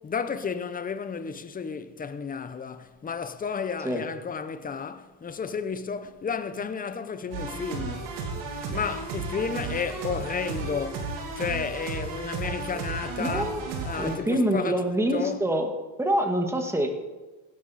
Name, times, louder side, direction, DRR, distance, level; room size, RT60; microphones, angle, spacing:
voice 1, 0.0-8.2 8.7-11.1 11.4-15.5, left 6 dB, 20° left, 0.8 m, -32 dB
sound 1, 7.3-14.2, right 4 dB, 85° right, 3.2 m, -34 dB
voice 2, 13.2-13.6 14.0-15.7 16.0-16.9, right 1 dB, 5° right, 1.6 m, -25 dB
17.0 x 11.5 x 4.2 m
cardioid pair, 125°, 47 cm